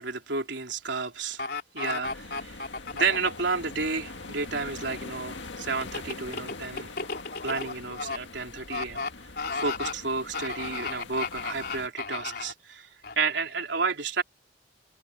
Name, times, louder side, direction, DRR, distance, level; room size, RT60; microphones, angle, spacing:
voice 1, 0.0-1.5 1.7-6.9 7.4-9.0 9.5-12.9 13.2-14.2, right 4 dB, 80° right, 3.5 m, -31 dB
sound 1, 1.4-3.4 5.8-8.2 8.7-9.1 9.4-9.9 10.3-12.5 13.0-13.1, left 4 dB, 55° left, 3.9 m, -33 dB
sound 2, 2.0-11.9, left 3 dB, 85° left, 1.9 m, -43 dB
head